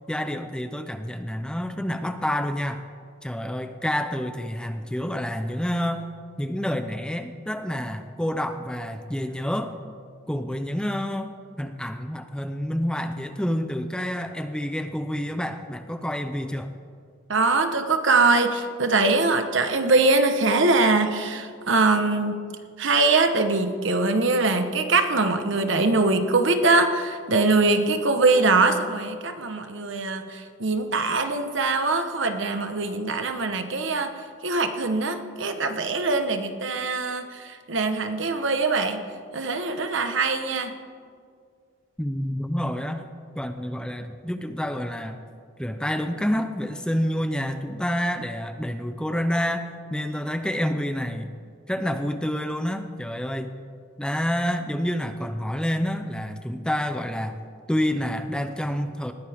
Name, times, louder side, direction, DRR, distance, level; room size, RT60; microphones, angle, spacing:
voice 1, 0.1-2.8 3.2-6.1 6.4-9.8 10.3-16.7 42.0-43.0 43.4-45.2 45.6-51.3 51.7-53.6 54.0-57.4 57.7-59.1, equal, 5° left, 8 dB, 0.6 m, -28 dB
voice 2, 17.3-22.4 22.8-34.1 34.4-39.0 39.3-40.7, right 3 dB, 65° right, 7 dB, 1.1 m, -22 dB
19.5 x 14.5 x 3.6 m, 2.1 s
head